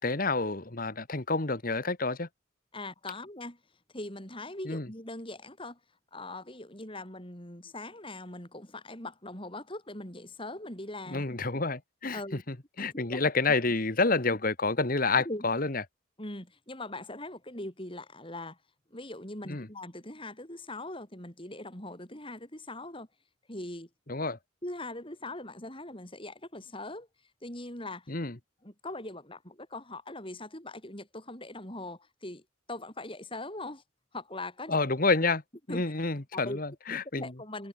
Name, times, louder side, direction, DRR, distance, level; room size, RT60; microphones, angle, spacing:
voice 1, 0.0-2.3 4.6-4.9 11.1-12.2 12.5-15.8 19.4-19.7 24.1-24.4 28.1-28.4 34.7-35.4 35.7-37.3, left 3 dB, 45° left, 1.7 m, -29 dB
voice 2, 2.7-3.6 3.9-5.8 6.1-11.2 12.1-12.4 12.8-13.2 15.3-15.5 16.2-18.6 18.9-23.1 23.5-23.9 24.6-27.1 27.4-28.1 28.6-32.4 32.7-33.8 34.1-34.8 35.7-35.8 36.3-36.6 36.9-37.7, left 2 dB, 25° left, 5.9 m, -41 dB
head